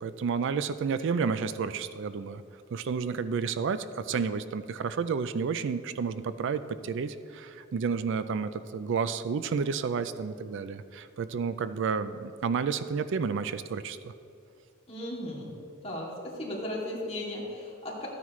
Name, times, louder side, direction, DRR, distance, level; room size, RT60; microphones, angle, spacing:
voice 1, 0.0-2.4 2.7-14.1, right 5 dB, 65° right, 13 dB, 0.4 m, -31 dB
voice 2, 14.9-15.5 15.8-18.1, left 1 dB, 30° left, -5 dB, 2.5 m, -36 dB
13.5 x 9.5 x 3.1 m, 2.6 s
head